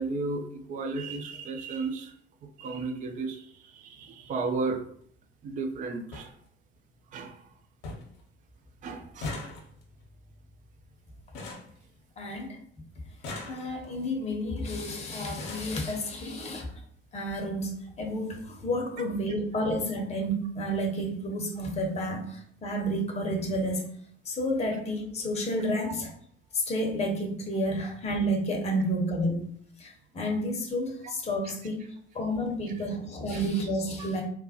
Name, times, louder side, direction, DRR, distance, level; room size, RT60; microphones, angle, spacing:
voice 1, 0.0-2.1 2.4-4.8 5.4-6.3 7.1-7.5 8.8-9.3 31.0-31.1 31.4-31.6 33.3-33.4 34.0-34.1, right 3 dB, 25° right, 5 dB, 0.4 m, -34 dB
sound 1, 4.0-4.2 5.4-5.5 5.7-5.8 6.1-6.3 6.8-7.2 7.5-7.6 7.8-8.2 8.5-12.5 13.0-14.0 14.8-14.9 15.2-15.8 16.7-16.8 17.2-17.4 17.6-17.8, left 2 dB, 60° left, 0.8 m, -41 dB
voice 2, 12.2-12.6 13.5-16.7 17.1-23.9 24.2-26.1 26.5-29.4 29.8-31.8 32.1-34.2, equal, 20° left, 0 dB, 0.7 m, -30 dB
3.1 x 2.0 x 2.8 m, 0.63 s
figure-of-eight pair, 55°, 32 cm